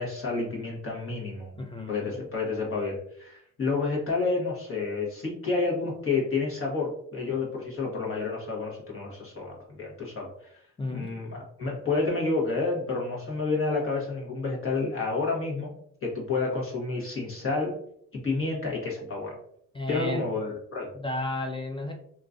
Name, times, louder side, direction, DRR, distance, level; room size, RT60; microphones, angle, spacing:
voice 1, 0.0-1.6 1.9-10.6 10.9-15.7 16.0-17.7 18.1-19.4 19.9-20.9, left 3 dB, 45° left, -2 dB, 1.3 m, -30 dB
voice 2, 1.6-2.2 10.8-11.1 19.7-20.3 21.0-21.9, left 2 dB, 20° left, 2 dB, 0.3 m, -33 dB
2.9 x 2.4 x 2.6 m, 0.66 s
cardioid pair, 90°, 30 cm